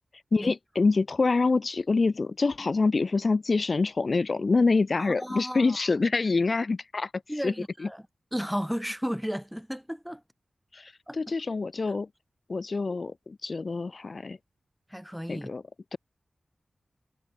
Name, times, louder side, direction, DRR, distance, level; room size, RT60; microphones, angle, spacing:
voice 1, 0.3-7.1 7.4-7.5 10.7-12.1 12.5-14.4 15.3-15.6 15.9-16.0, left 3 dB, 50° left, 1.5 m, -26 dB
voice 2, 5.0-5.8 7.3-8.1 8.3-10.2 11.1-11.3 14.9-15.5, equal, ahead, 3.5 m, -34 dB
wide cardioid pair, 110°, 0 cm